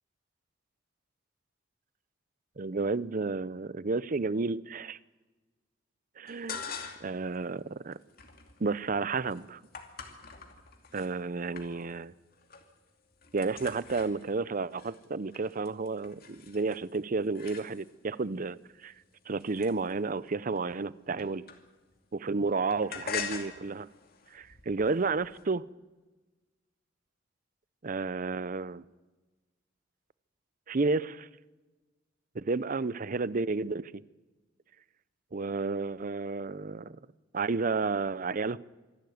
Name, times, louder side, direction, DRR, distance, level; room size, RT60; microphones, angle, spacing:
voice 1, 2.6-5.0 6.2-6.6 7.0-8.0 8.6-9.6 10.9-12.1 13.3-18.9 19.3-21.4 22.1-23.9 24.3-25.6 27.8-28.8 30.7-31.3 32.3-34.0 35.3-37.0 37.3-38.6, right 4 dB, 45° right, 18 dB, 0.6 m, -31 dB
sound 1, 6.3-7.2 7.6-11.1 11.5-12.1 12.3-12.8 13.0-18.1 18.7-22.0 22.3-25.4, left 6 dB, 50° left, 2.6 m, -44 dB
26.0 x 12.0 x 9.4 m, 1.2 s
head